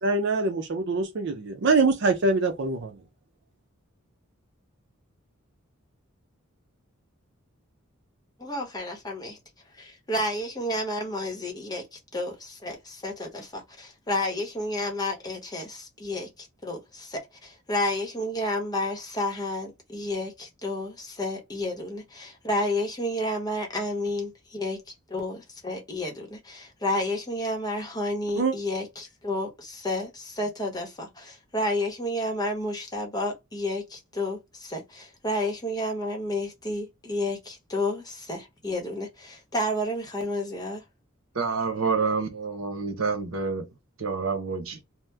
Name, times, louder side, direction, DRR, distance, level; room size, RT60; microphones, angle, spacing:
voice 1, 0.0-2.9 28.4-28.5, right 3 dB, 55° right, 0.5 m, -24 dB
voice 2, 8.4-9.4 9.8-24.8 25.1-40.8, left 1 dB, 20° left, 0.9 m, -31 dB
voice 3, 41.3-43.6 44.0-44.8, right 4 dB, 80° right, 0.9 m, -28 dB
2.8 x 2.1 x 3.3 m
head